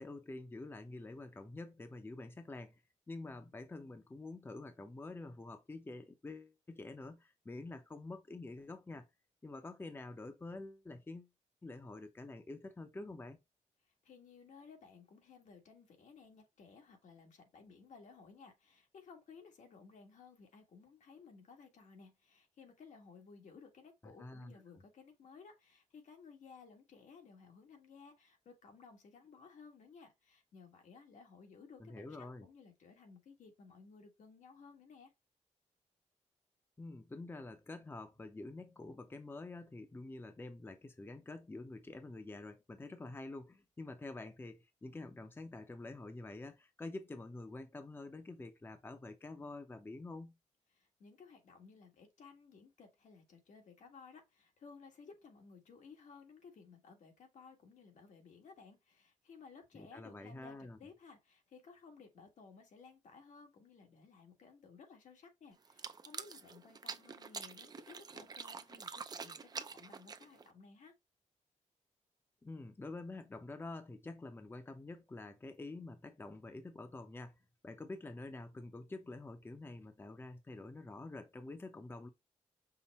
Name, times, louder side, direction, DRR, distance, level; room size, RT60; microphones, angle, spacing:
voice 1, 0.0-2.8 3.1-9.1 9.4-11.3 11.6-13.4 24.0-24.5 31.8-32.5 36.8-50.3 59.7-60.8 72.4-77.4 77.6-82.1, left 2 dB, 20° left, 0.6 m, -47 dB
voice 2, 13.8-35.1 50.7-70.9, left 5 dB, 80° left, 1.4 m, -58 dB
sound 1, 65.6-70.5, right 5 dB, 30° right, 0.4 m, -46 dB
5.6 x 2.1 x 4.1 m
wide cardioid pair, 120°, 12 cm